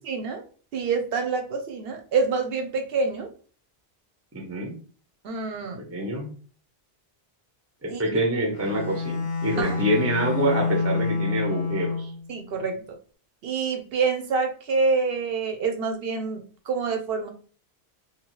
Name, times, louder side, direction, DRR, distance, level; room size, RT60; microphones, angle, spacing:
voice 1, 0.0-0.4 0.7-3.3 5.2-5.8 7.9-8.0 9.6-9.8 12.3-12.9 13.4-17.3, right 4 dB, 65° right, 5 dB, 0.8 m, -27 dB
voice 2, 4.3-4.7 5.8-6.3 7.8-12.1, right 1 dB, 20° right, 0 dB, 0.5 m, -26 dB
Bowed string instrument, 8.5-12.3, left 4 dB, 50° left, 0.6 m, -28 dB
2.8 x 2.3 x 3.0 m, 0.41 s
omnidirectional pair, 1.1 m